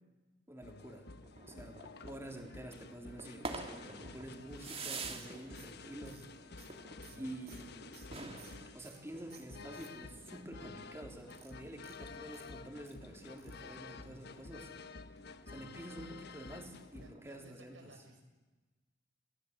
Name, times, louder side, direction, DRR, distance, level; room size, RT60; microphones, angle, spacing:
voice 1, 0.5-1.1 1.5-6.2 7.2-7.9 8.7-14.7 15.5-17.7, right 1 dB, 15° right, 2 dB, 3.7 m, -48 dB
sound 1, 0.6-17.1, left 3 dB, 60° left, 1.2 m, -51 dB
sound 2, 1.2-17.5, right 3 dB, 35° right, 2.5 m, -51 dB
sound 3, 5.1-9.1 9.3-10.3 11.2-13.0 13.4-13.7 14.0-14.1 14.3-14.4, right 10 dB, 55° right, 3.0 m, -60 dB
voice 2, 7.1-7.4 12.1-12.2 16.0-16.2 17.0-18.2, right 1 dB, 90° right, 2 dB, 6.9 m, -58 dB
28.5 x 19.0 x 8.2 m, 1.2 s
head